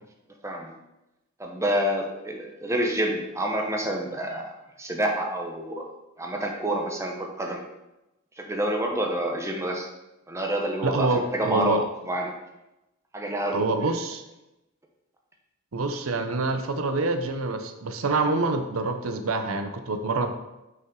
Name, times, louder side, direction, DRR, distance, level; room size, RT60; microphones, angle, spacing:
voice 1, 1.4-4.5 4.8-5.8 6.2-7.6 8.4-9.9 10.3-11.8 12.1-12.3 13.1-13.9, right 1 dB, 15° right, 1 dB, 0.8 m, -28 dB
voice 2, 10.8-11.8 13.5-14.2 15.7-20.3, right 3 dB, 85° right, 7 dB, 0.6 m, -26 dB
5.9 x 5.6 x 3.8 m, 0.95 s
head